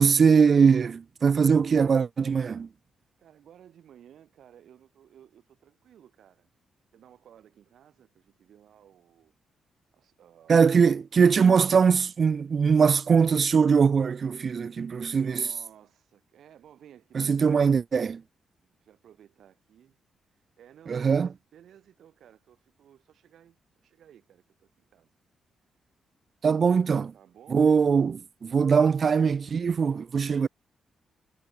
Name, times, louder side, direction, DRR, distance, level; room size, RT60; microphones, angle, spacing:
voice 1, 0.0-2.7 10.5-15.5 17.1-18.2 20.9-21.3 26.4-27.1 27.5-30.5, right 6 dB, 40° right, 0.6 m, -21 dB
voice 2, 3.2-6.5 6.9-9.3 9.9-11.3 14.7-14.8 15.2-17.8 18.6-20.0 20.3-25.1 27.1-27.9, right 10 dB, 70° right, 6.0 m, -56 dB
cardioid pair, 140°, 0 cm